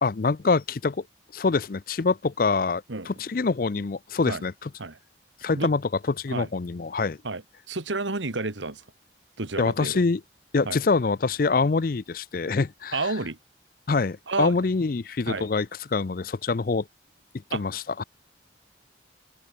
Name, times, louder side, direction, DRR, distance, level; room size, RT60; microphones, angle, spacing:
voice 1, 0.0-1.0 1.3-4.7 5.4-5.8 6.2-7.2 9.6-10.2 10.5-13.0 13.9-16.9 17.5-18.0, left 4 dB, 50° left, 0.5 m, -25 dB
voice 2, 7.2-8.8 9.4-10.0 10.7-10.8 12.9-13.4 14.3-14.5 15.3-15.5 17.5-17.6, right 3 dB, 85° right, 1.9 m, -30 dB
open air
head